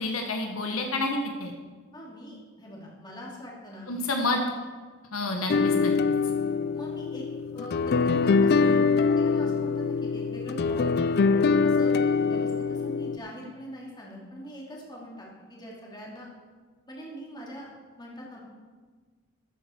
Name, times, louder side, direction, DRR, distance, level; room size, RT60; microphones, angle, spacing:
voice 1, 0.0-1.5 3.9-4.4 5.1-5.9, left 2 dB, 80° left, 3 dB, 1.3 m, -29 dB
voice 2, 1.9-3.9 4.6-4.7 6.7-10.9 11.6-16.3 16.9-18.4, equal, 20° left, -3 dB, 2.7 m, -43 dB
sound 1, 5.5-13.2, left 4 dB, 50° left, 0.4 m, -24 dB
13.5 x 8.8 x 4.5 m, 1.4 s
head